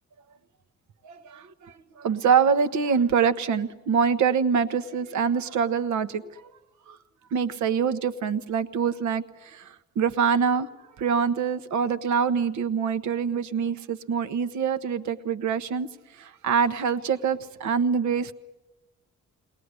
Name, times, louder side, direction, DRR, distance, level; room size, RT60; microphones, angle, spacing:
voice 1, 1.0-6.5 6.9-7.0 7.3-10.7 11.0-15.9 16.2-18.3, right 6 dB, 70° right, 10 dB, 1.2 m, -25 dB
22.0 x 19.0 x 9.8 m, 1.0 s
cardioid pair, 90°, 30 cm